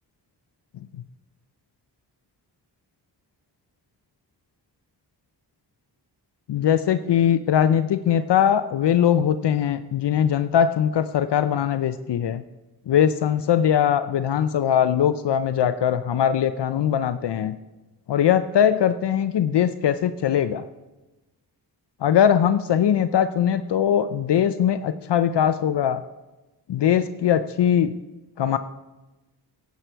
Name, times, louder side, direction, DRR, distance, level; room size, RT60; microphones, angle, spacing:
voice 1, 6.5-12.4 12.9-17.6 18.1-20.7 22.0-26.0 26.7-28.0 28.4-28.6, left 9 dB, 75° left, 11 dB, 0.6 m, -21 dB
16.5 x 8.2 x 4.5 m, 1.1 s
wide cardioid pair, 110°, 41 cm